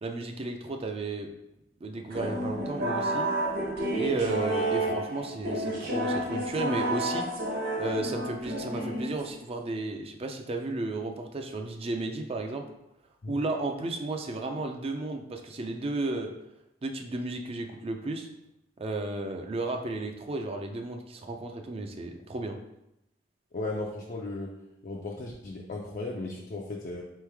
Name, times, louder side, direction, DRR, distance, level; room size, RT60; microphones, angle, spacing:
voice 1, 0.0-1.3 1.8-3.3 3.9-7.3 7.8-12.6 13.3-16.3 16.8-18.3 18.8-22.6, right 2 dB, 30° right, 4 dB, 0.4 m, -33 dB
sound 1, 2.1-9.5, right 1 dB, 55° right, 1.0 m, -30 dB
voice 2, 23.5-24.5 24.8-27.0, left 2 dB, 45° left, -2 dB, 0.4 m, -36 dB
4.0 x 3.1 x 3.4 m, 0.84 s
head